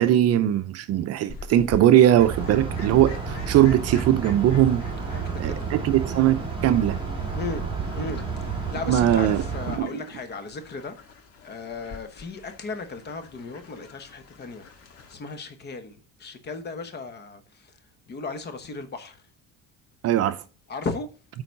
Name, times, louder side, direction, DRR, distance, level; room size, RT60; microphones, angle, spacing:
voice 1, 0.0-4.8 5.4-7.0 8.9-9.4 9.8-9.9 20.0-20.4, right 12 dB, 55° right, 0.6 m, -20 dB
Fowl, 1.3-15.1, left 4 dB, 50° left, 1.9 m, -47 dB
sound 1, 2.2-9.8, right 5 dB, 15° right, 2.7 m, -31 dB
voice 2, 5.1-5.7 7.3-7.6 7.9-11.0 11.4-14.7 15.1-17.8 18.1-19.2 20.7-21.1, left 4 dB, 35° left, 1.1 m, -36 dB
9.0 x 4.0 x 5.3 m
cardioid pair, 150°, 31 cm